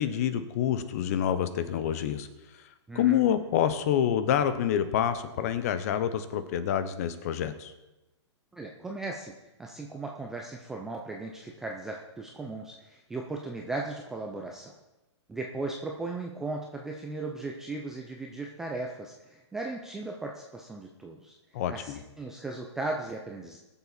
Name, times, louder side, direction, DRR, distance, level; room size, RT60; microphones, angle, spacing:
voice 1, 0.0-2.3 2.5-2.6 2.9-7.7 21.5-22.0, left 9 dB, 30° left, 11 dB, 0.8 m, -27 dB
voice 2, 2.9-3.2 8.5-9.3 9.6-14.7 15.3-21.4 21.7-23.6, right 2 dB, 5° right, 0 dB, 0.3 m, -37 dB
20.5 x 7.1 x 4.1 m, 1.0 s
hypercardioid pair, 170°, 15 cm